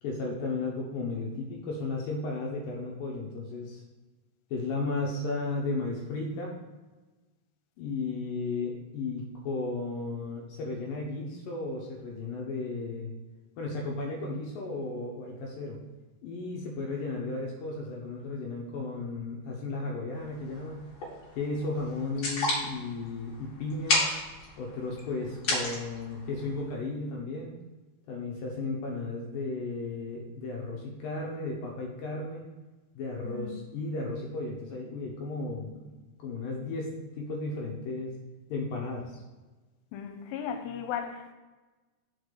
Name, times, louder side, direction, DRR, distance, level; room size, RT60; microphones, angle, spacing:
voice 1, 0.0-3.8 4.5-6.6 7.8-13.1 13.6-15.8 16.2-20.9 21.4-24.0 24.6-27.6 28.1-32.5 33.0-35.9 36.2-38.2 38.5-39.2, left 3 dB, 70° left, -2 dB, 2.3 m, -34 dB
sound 1, 20.1-26.7, left 2 dB, 50° left, 2.6 m, -34 dB
voice 2, 33.2-33.6 39.9-41.3, left 8 dB, 90° left, 6 dB, 2.8 m, -36 dB
6.5 x 4.6 x 6.5 m, 1.2 s
omnidirectional pair, 4.8 m